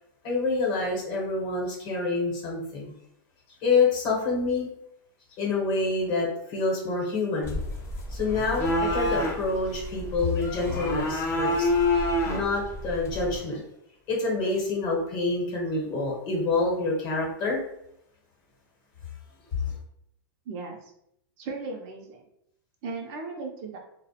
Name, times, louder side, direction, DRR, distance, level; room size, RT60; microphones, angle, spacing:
voice 1, 0.2-2.9 3.6-4.7 5.4-7.6 8.1-11.7 12.2-13.6 14.1-17.6 19.5-19.7, left 3 dB, 40° left, -1 dB, 0.9 m, -27 dB
sound 1, 7.4-13.4, left 1 dB, 25° left, 0.4 m, -28 dB
voice 2, 20.5-20.8 21.4-22.2 22.8-23.8, right 3 dB, 45° right, 2 dB, 0.4 m, -36 dB
2.2 x 2.0 x 2.7 m, 0.76 s
supercardioid pair, 140°, 12 cm